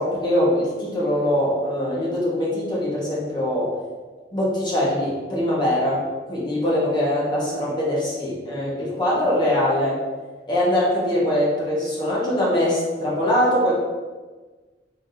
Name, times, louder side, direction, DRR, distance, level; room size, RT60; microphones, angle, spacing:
voice 1, 0.0-3.7 4.3-6.0 6.3-10.0 10.5-13.7, left 1 dB, 25° left, -6 dB, 1.1 m, -22 dB
3.8 x 3.5 x 2.7 m, 1.3 s
head